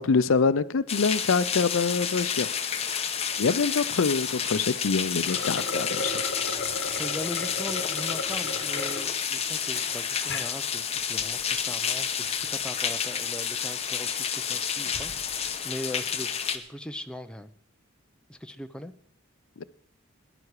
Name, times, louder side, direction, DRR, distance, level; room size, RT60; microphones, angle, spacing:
voice 1, 0.0-2.5 3.4-6.2 19.6-19.7, left 5 dB, 75° left, 15 dB, 0.5 m, -25 dB
sound 1, 0.9-16.6, left 7 dB, 30° left, 1.0 m, -30 dB
Slam, 3.4-4.1 5.4-6.0 9.6-10.7, right 3 dB, 60° right, 3.0 m, -50 dB
sound 2, 5.2-9.1 9.6-9.7 10.2-10.5, left 3 dB, 55° left, 1.5 m, -34 dB
voice 2, 6.9-15.4 15.6-17.5 18.3-18.9, left 1 dB, 5° left, 7 dB, 0.6 m, -39 dB
19.0 x 11.0 x 4.8 m, 0.67 s
head